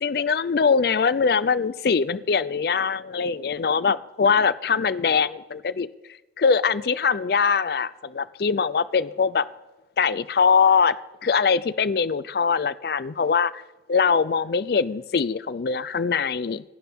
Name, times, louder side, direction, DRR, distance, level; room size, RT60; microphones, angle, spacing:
voice 1, 0.0-5.9 6.4-9.5 10.0-10.9 11.2-13.5 13.9-16.6, left 5 dB, 60° left, 17 dB, 0.4 m, -22 dB
27.0 x 10.5 x 3.6 m, 1.0 s
head